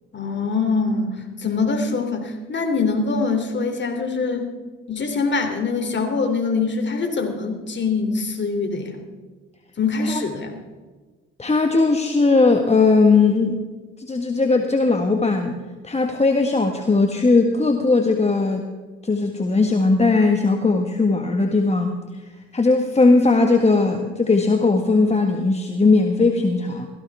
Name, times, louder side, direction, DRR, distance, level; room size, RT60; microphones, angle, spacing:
voice 1, 0.1-4.5 4.9-9.0 9.8-10.5, left 4 dB, 35° left, 5 dB, 3.0 m, -24 dB
voice 2, 11.4-13.6 14.0-15.5 15.8-18.7 19.0-21.9 22.5-26.9, left 3 dB, 20° left, 4 dB, 1.5 m, -18 dB
17.0 x 15.0 x 3.5 m, 1.3 s
supercardioid pair, 65°, 31 cm